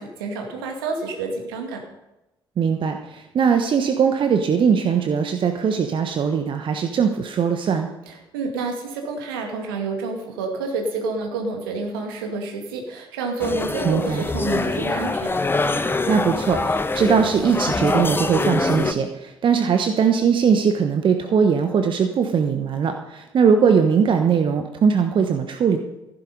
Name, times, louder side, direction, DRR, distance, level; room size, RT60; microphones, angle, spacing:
voice 1, 0.0-1.8 8.1-15.4, right 3 dB, 75° right, 3 dB, 2.2 m, -28 dB
voice 2, 2.6-7.9 13.8-14.2 16.1-25.8, right 6 dB, 45° right, 6 dB, 1.2 m, -20 dB
sound 1, 13.4-18.9, left 3 dB, 20° left, 1.0 m, -24 dB
15.0 x 11.0 x 5.4 m, 0.95 s
figure-of-eight pair, 45°, 12 cm